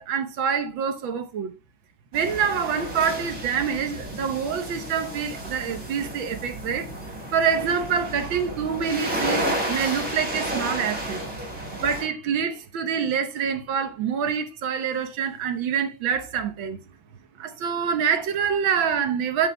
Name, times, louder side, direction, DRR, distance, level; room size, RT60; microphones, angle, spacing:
voice 1, 0.0-1.5 2.1-6.9 7.3-11.2 11.7-16.8 17.4-19.5, right 7 dB, 75° right, 1.7 m, -26 dB
sound 1, 2.1-12.0, right 1 dB, 45° right, 4.2 m, -32 dB
10.5 x 7.8 x 2.2 m
omnidirectional pair, 2.2 m